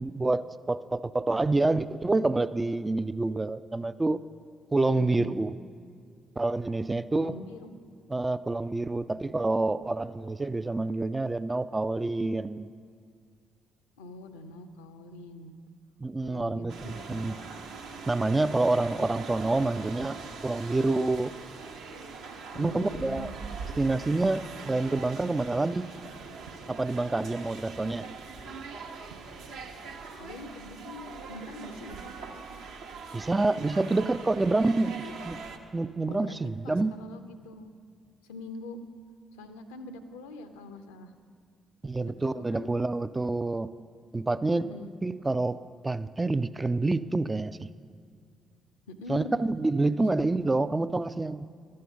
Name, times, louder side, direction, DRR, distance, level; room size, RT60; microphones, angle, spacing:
voice 1, 0.0-4.2 4.7-5.5 6.4-7.4 8.1-12.7 16.0-17.3 18.1-20.2 20.4-21.3 22.5-23.3 23.8-25.9 26.7-28.1 33.1-35.4 35.7-37.0 41.8-43.7 44.1-44.7 45.0-47.7 49.1-51.5, right 2 dB, 20° right, 13 dB, 0.3 m, -27 dB
voice 2, 4.8-5.3 7.1-7.7 14.0-15.5 16.2-17.3 22.5-23.3 30.2-32.1 35.0-35.1 36.1-36.4 36.6-37.7 38.3-38.8 39.3-41.1 42.0-42.7 44.5-44.9 48.9-49.4 49.9-50.1, left 2 dB, 75° left, 9 dB, 0.6 m, -43 dB
sound 1, 16.7-35.6, right 4 dB, 65° right, 0.8 m, -42 dB
12.5 x 7.6 x 6.8 m, 2.2 s
figure-of-eight pair, 40°, 0 cm